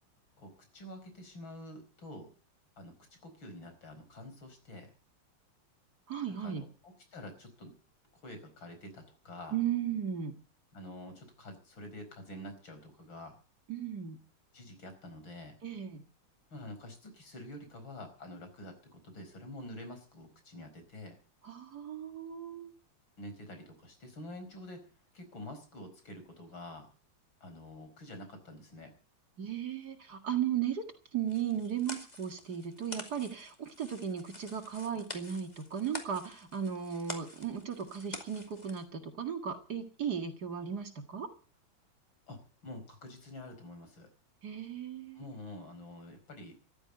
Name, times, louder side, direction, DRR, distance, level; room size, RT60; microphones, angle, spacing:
voice 1, 0.4-2.3 2.8-2.9 3.2-4.9 6.3-7.7 8.2-9.6 10.7-13.4 14.5-15.5 16.5-21.2 23.2-24.9 25.1-26.9 27.4-28.9 42.3-44.1 45.1-46.6, left 1 dB, 70° left, 7 dB, 5.6 m, -47 dB
voice 2, 6.1-6.7 9.5-10.4 13.7-14.2 15.6-16.0 21.4-22.7 29.4-30.8 31.1-41.3 44.4-45.3, right 8 dB, 50° right, 6 dB, 2.3 m, -36 dB
sound 1, 31.3-38.8, left 2 dB, 20° left, 2.4 m, -47 dB
14.5 x 12.5 x 7.7 m, 0.39 s
omnidirectional pair, 2.2 m